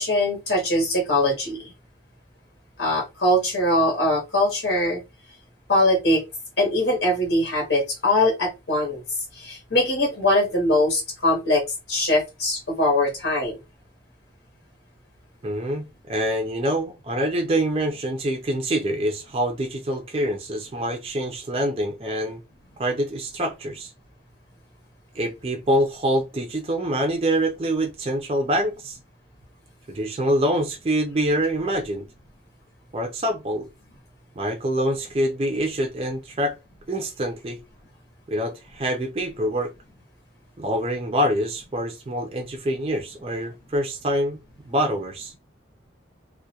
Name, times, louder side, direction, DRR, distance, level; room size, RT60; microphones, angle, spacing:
voice 1, 0.0-1.7 2.8-5.0 5.7-6.2 6.6-9.0 9.4-13.6, left 1 dB, 70° left, 0.9 m, -22 dB
voice 2, 15.4-22.4 22.8-23.9 25.1-29.0 29.9-32.1 32.9-33.7 34.4-36.5 36.9-37.6 38.3-39.7 40.6-44.4 44.6-45.3, right 1 dB, 30° right, 0.4 m, -25 dB
2.3 x 2.1 x 2.7 m
head